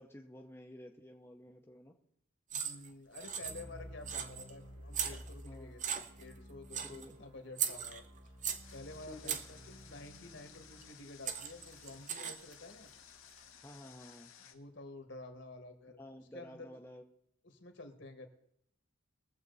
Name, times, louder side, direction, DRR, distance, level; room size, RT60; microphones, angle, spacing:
voice 1, 0.0-2.0 5.4-5.7 6.8-7.2 9.0-9.4 13.6-14.3 16.0-17.0, left 1 dB, 10° left, 1 dB, 0.7 m, -52 dB
voice 2, 2.5-8.0 8.7-12.9 14.5-16.0 16.3-16.7 17.4-18.3, left 2 dB, 55° left, 6 dB, 1.7 m, -50 dB
sound 1, 2.5-2.9 3.1-3.8 4.1-4.5 4.9-5.5 5.8-6.3 6.7-7.1 7.6-8.7 9.2-9.6 10.8-10.9 11.3-12.5, right 8 dB, 35° right, 0.8 m, -38 dB
sound 2, 3.2-13.3, equal, 80° right, 4.9 m, -54 dB
Water, 8.6-14.5, left 8 dB, 80° left, 1.5 m, -57 dB
21.0 x 7.6 x 4.0 m, 0.71 s
head